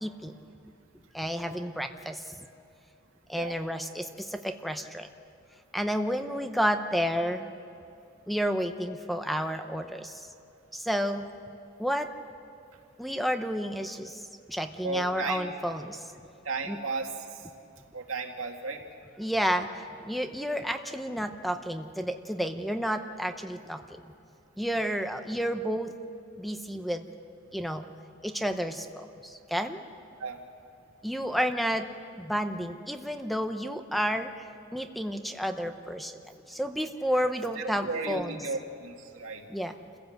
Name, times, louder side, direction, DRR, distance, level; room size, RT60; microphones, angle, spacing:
voice 1, 0.0-0.3 1.1-2.4 3.3-5.1 5.7-7.5 8.3-10.2 10.7-11.3 11.8-12.1 13.0-16.1 16.7-16.8 19.2-23.8 24.6-25.9 26.4-27.0 27.5-27.8 28.2-29.8 31.0-31.9 32.2-34.5 34.7-36.1 36.5-38.6 39.5-39.7, equal, ahead, 7 dB, 0.7 m, -31 dB
voice 2, 14.8-15.5 16.4-17.4 17.9-18.8 30.2-30.4 37.6-39.4, right 3 dB, 80° right, 2 dB, 2.1 m, -34 dB
27.5 x 16.0 x 8.0 m, 2.6 s
head